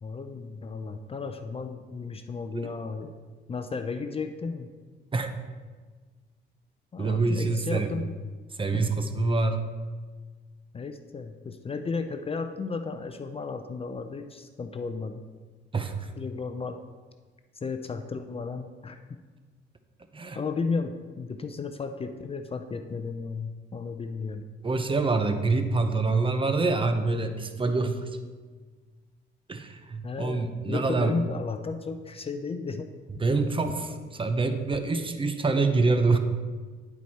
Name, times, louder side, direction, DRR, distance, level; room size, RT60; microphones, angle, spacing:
voice 1, 0.0-3.1 3.5-4.7 6.9-8.2 8.7-8.8 10.7-15.2 16.2-16.8 17.6-19.2 20.4-24.4 30.0-32.9 33.1-33.3, left 4 dB, 30° left, 8 dB, 0.5 m, -34 dB
voice 2, 7.0-7.9 8.6-9.6 15.7-16.1 20.1-20.4 24.6-28.0 29.5-31.2 33.2-36.2, right 3 dB, 25° right, 8 dB, 0.7 m, -26 dB
10.0 x 4.6 x 4.2 m, 1.4 s
cardioid pair, 90°, 20 cm